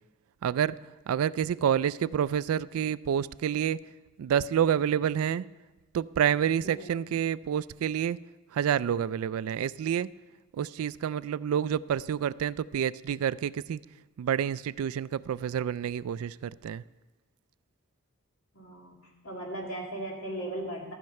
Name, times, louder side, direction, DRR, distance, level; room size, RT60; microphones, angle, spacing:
voice 1, 0.4-0.8 1.1-3.8 4.2-5.4 5.9-8.2 8.5-10.1 10.5-13.8 14.2-16.8, right 9 dB, 80° right, 19 dB, 0.3 m, -28 dB
voice 2, 6.6-7.0 18.5-19.0 19.2-20.9, right 1 dB, 70° left, -1 dB, 2.5 m, -37 dB
14.0 x 5.7 x 6.5 m, 1.2 s
head